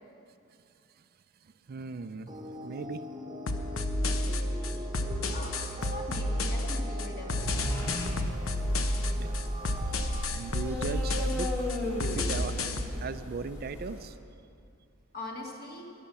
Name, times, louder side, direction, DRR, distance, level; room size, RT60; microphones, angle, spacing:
voice 1, 1.7-2.3 2.6-3.0 4.6-4.9 9.2-9.4 10.3-11.7 12.0-12.7 13.0-14.2, right 4 dB, 45° right, 12 dB, 0.4 m, -38 dB
sound 1, 2.3-10.3, equal, 20° right, 1.0 m, -42 dB
sound 2, 3.5-12.9, left 1 dB, 70° left, 0.9 m, -31 dB
voice 2, 5.3-7.7 15.1-15.9, left 2 dB, 50° left, -1 dB, 2.2 m, -42 dB
sound 3, 7.4-14.1, left 1 dB, 15° left, 2.3 m, -37 dB
13.0 x 10.5 x 7.1 m, 2.4 s
head